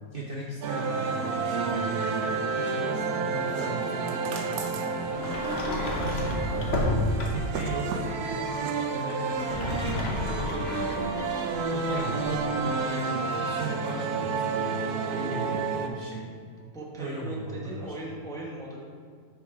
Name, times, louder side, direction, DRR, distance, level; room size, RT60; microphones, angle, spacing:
voice 1, 0.1-2.2 2.5-4.1 4.5-5.3 6.1-6.9 7.3-9.2 9.6-10.9 11.7-14.7 15.1-16.2 17.0-17.9, right 2 dB, 45° right, -4 dB, 0.8 m, -37 dB
sound 1, 0.6-15.9, right 4 dB, 80° right, 1.2 m, -30 dB
Sliding door, 5.1-7.6 9.3-12.4, left 2 dB, 50° left, 1.1 m, -31 dB
voice 2, 6.4-6.9 11.9-12.3 16.7-18.8, right 1 dB, 5° left, -3 dB, 0.8 m, -39 dB
6.3 x 5.1 x 4.8 m, 2.1 s
omnidirectional pair, 1.6 m